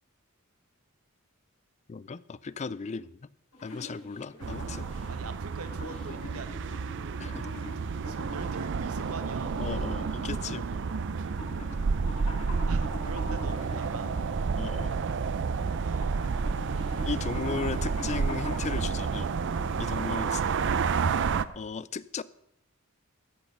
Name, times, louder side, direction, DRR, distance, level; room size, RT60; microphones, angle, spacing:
voice 1, 1.9-3.3 3.6-4.9 7.2-7.5 9.6-10.8 14.6-14.9 17.0-19.3 19.8-20.4 21.5-22.2, left 5 dB, 30° left, 0.4 m, -36 dB
sound 1, 3.5-20.4, left 1 dB, 90° left, 5.5 m, -44 dB
sound 2, 4.4-21.5, right 5 dB, 60° right, 0.5 m, -30 dB
voice 2, 5.1-7.2 7.5-7.6 8.1-9.5 10.2-10.4 11.1-11.4 12.7-14.1 15.5-17.0, right 4 dB, 80° right, 1.2 m, -44 dB
13.5 x 8.6 x 5.5 m
head